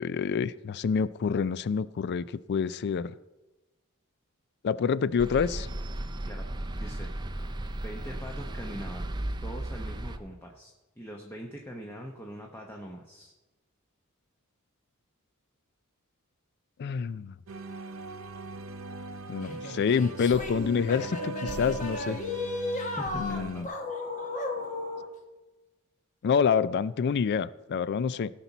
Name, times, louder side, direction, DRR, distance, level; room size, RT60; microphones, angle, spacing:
voice 1, 0.0-3.1 4.6-5.7 16.8-17.3 19.3-22.2 23.1-23.7 26.2-28.3, left 6 dB, 50° left, 17 dB, 0.3 m, -27 dB
sound 1, 5.2-10.2, right 1 dB, 20° right, 0.5 m, -35 dB
voice 2, 6.7-7.1 7.8-9.1 9.4-13.3 23.0-23.7, equal, 10° left, 1 dB, 0.8 m, -42 dB
sound 2, 17.5-23.6, right 2 dB, 65° right, 0.6 m, -40 dB
sound 3, 19.4-25.1, left 2 dB, 35° left, 1.2 m, -35 dB
17.0 x 5.9 x 4.1 m, 1.1 s
head